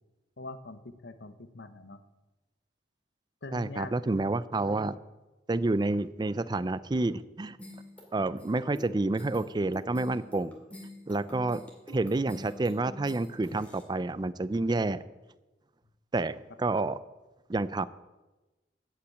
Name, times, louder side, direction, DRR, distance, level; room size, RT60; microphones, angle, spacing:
voice 1, 0.4-2.0 3.4-3.9, left 2 dB, 60° left, 11 dB, 0.9 m, -43 dB
voice 2, 3.5-4.9 5.5-7.6 8.1-10.5 11.1-11.6 11.9-15.0 16.1-17.0 17.5-17.9, right 2 dB, 25° right, 15 dB, 0.4 m, -29 dB
sound 1, 7.6-13.8, left 1 dB, 5° left, 2.3 m, -46 dB
14.0 x 5.8 x 8.5 m, 1.1 s
head